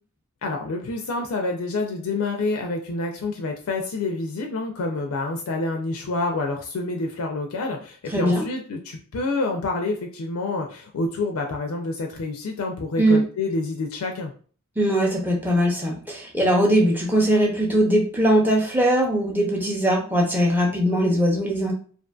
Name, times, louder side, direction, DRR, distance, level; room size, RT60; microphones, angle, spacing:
voice 1, 0.4-14.3, left 3 dB, 80° left, 3 dB, 0.4 m, -28 dB
voice 2, 8.1-8.4 13.0-13.2 14.8-21.7, right 1 dB, 10° right, -1 dB, 0.6 m, -20 dB
2.5 x 2.5 x 2.2 m, 0.43 s
head